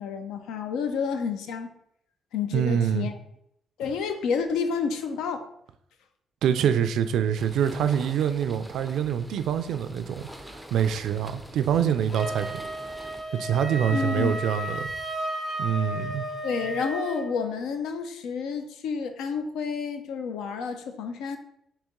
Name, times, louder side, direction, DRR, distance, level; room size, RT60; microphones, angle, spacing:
voice 1, 0.0-1.7 2.3-3.1 3.8-5.5 13.9-14.4 16.4-21.4, left 6 dB, 90° left, 7 dB, 0.4 m, -30 dB
voice 2, 2.5-3.1 6.4-12.6 13.3-14.9 15.6-16.3, right 8 dB, 80° right, 10 dB, 0.3 m, -25 dB
sound 1, 7.4-13.2, equal, ahead, 0.4 m, -45 dB
Wind instrument woodwind instrument, 12.1-17.3, equal, 35° left, 1.5 m, -33 dB
4.0 x 2.8 x 3.6 m, 0.75 s
cardioid pair, 90°, 0 cm